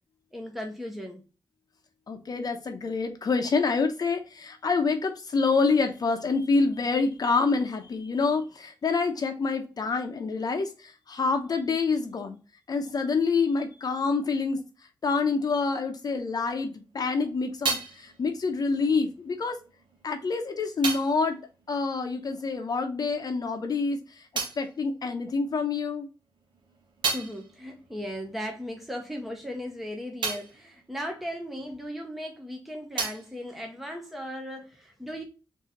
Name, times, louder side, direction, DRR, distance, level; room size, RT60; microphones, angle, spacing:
voice 1, 0.3-1.2 27.1-35.2, equal, ahead, 2 dB, 0.8 m, -37 dB
voice 2, 2.1-12.4 12.7-14.6 15.0-19.6 20.0-21.4 21.7-26.1, left 4 dB, 55° left, 5 dB, 0.7 m, -27 dB
sound 1, 16.8-22.8 23.1-25.8 26.2-32.2 32.5-34.5, right 4 dB, 85° right, 1.0 m, -37 dB
3.8 x 2.7 x 4.0 m, 0.32 s
wide cardioid pair, 95°, 8 cm